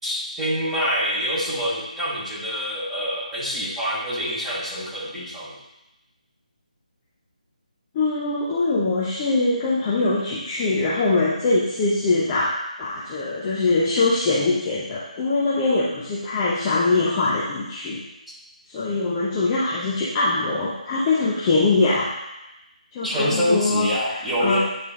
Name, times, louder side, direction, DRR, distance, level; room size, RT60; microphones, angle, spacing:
voice 1, 0.0-5.5 23.0-24.6, equal, 5° right, -12 dB, 2.1 m, -26 dB
voice 2, 7.9-18.0 18.7-22.1 22.9-23.9 24.4-24.6, left 3 dB, 20° left, -8 dB, 0.9 m, -22 dB
9.7 x 3.9 x 3.8 m, 0.93 s
figure-of-eight pair, 165°, 4 cm